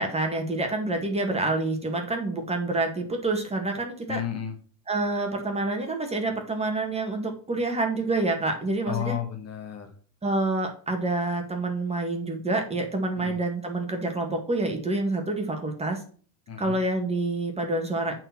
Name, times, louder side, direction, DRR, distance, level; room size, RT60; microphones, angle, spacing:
voice 1, 0.0-4.2 4.9-9.2 10.2-16.0 16.6-18.1, right 2 dB, 15° right, 3 dB, 1.9 m, -27 dB
voice 2, 4.1-4.6 8.9-9.9 13.1-13.4 16.5-16.8, left 9 dB, 35° left, 5 dB, 1.6 m, -32 dB
8.8 x 4.5 x 5.8 m, 0.42 s
supercardioid pair, 135°, 44 cm